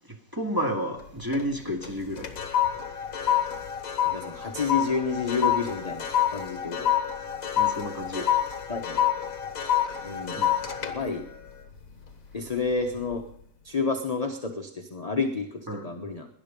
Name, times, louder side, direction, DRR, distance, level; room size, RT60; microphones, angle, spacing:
voice 1, 0.3-2.3 7.6-8.3 10.4-10.6 15.7-15.9, equal, 10° right, 1 dB, 2.0 m, -30 dB
sound 1, 1.0-1.5 1.8-12.4 12.8-13.1, left 10 dB, 50° left, 1.7 m, -28 dB
voice 2, 4.0-6.9 8.7-9.0 10.0-10.4 10.8-11.2 12.3-13.2 13.6-16.3, left 4 dB, 30° left, 4 dB, 0.8 m, -30 dB
19.0 x 11.0 x 5.3 m, 0.69 s
omnidirectional pair, 2.0 m